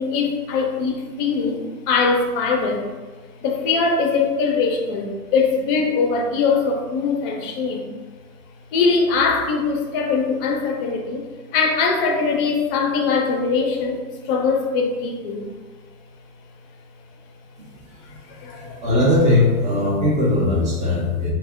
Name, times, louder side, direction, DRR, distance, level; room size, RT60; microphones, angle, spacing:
voice 1, 0.0-3.0 3.4-7.9 8.7-11.2 11.5-15.5 18.0-18.9, left 4 dB, 40° left, 2 dB, 0.5 m, -22 dB
voice 2, 18.6-21.3, left 2 dB, 15° right, -4 dB, 0.6 m, -19 dB
2.1 x 2.0 x 3.5 m, 1.3 s
hypercardioid pair, 115°, 45 cm